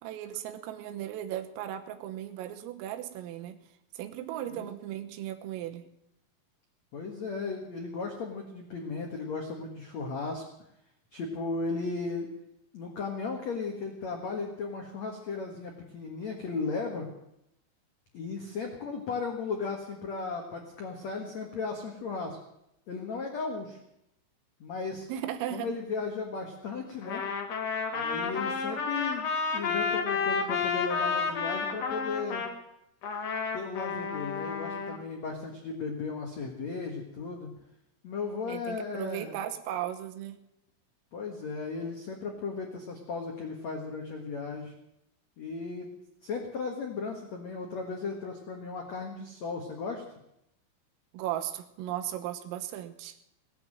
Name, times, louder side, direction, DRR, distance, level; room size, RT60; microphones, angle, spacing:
voice 1, 0.0-3.6 4.0-5.9 25.1-25.7 38.5-40.4 51.1-53.2, right 12 dB, 80° right, 8 dB, 3.7 m, -36 dB
voice 2, 6.9-10.4 11.1-12.3 12.7-17.1 18.1-22.4 22.9-23.8 24.6-25.1 25.5-27.2 27.9-32.4 33.5-37.5 38.0-39.3 41.1-44.7 45.4-45.9 46.2-50.0, left 4 dB, 85° left, 2 dB, 1.5 m, -36 dB
Trumpet, 27.0-32.5 33.0-35.0, left 5 dB, 70° left, 1.6 m, -31 dB
18.0 x 10.5 x 7.6 m, 0.81 s
omnidirectional pair, 6.0 m